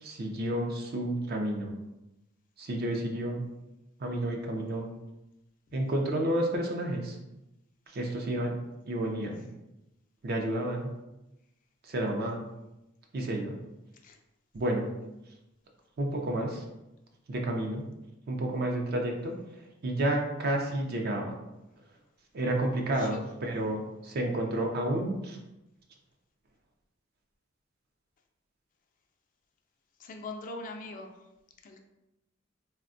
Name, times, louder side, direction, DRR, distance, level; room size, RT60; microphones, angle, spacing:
voice 1, 0.0-1.7 2.6-3.5 4.0-4.9 5.7-7.2 7.9-8.6 8.9-9.4 10.2-10.9 11.9-12.4 13.1-13.5 14.5-14.9 16.0-16.6 17.3-17.8 18.3-19.3 19.8-21.4 22.3-25.4, right 1 dB, 50° right, 2 dB, 0.5 m, -30 dB
voice 2, 30.0-31.1 31.6-31.8, left 2 dB, 40° left, 3 dB, 0.3 m, -41 dB
3.5 x 2.2 x 2.5 m, 0.94 s
head